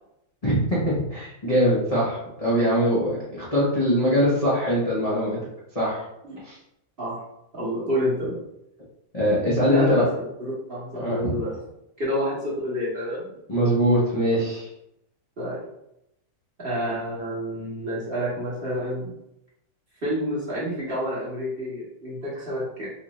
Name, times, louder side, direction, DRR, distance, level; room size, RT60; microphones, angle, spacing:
voice 1, 0.4-5.4 5.7-6.0 6.4-6.6 9.1-10.0 10.9-11.4 13.5-14.7, equal, 35° left, -8 dB, 0.6 m, -22 dB
voice 2, 7.5-8.4 9.7-11.6 12.0-13.3 15.4-15.7 16.6-19.1 20.0-22.9, equal, 35° right, -8 dB, 1.0 m, -28 dB
4.1 x 2.5 x 3.0 m, 0.81 s
omnidirectional pair, 2.1 m